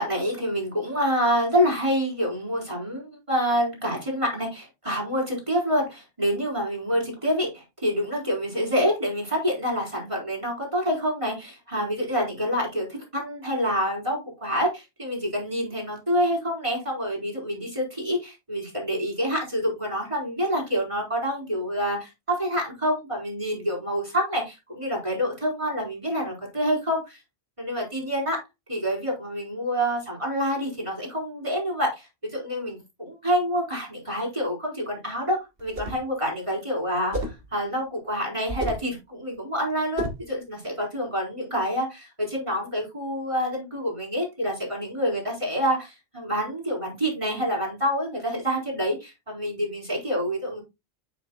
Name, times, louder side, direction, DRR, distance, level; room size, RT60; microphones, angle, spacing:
voice 1, 0.0-27.2 27.6-28.4 28.7-50.6, equal, 30° right, -1 dB, 4.4 m, -27 dB
sound 1, 35.6-36.1 37.1-37.5 38.5-38.9 40.0-40.3, right 1 dB, 60° right, 2.1 m, -31 dB
9.4 x 7.1 x 2.3 m, 0.23 s
omnidirectional pair, 1.1 m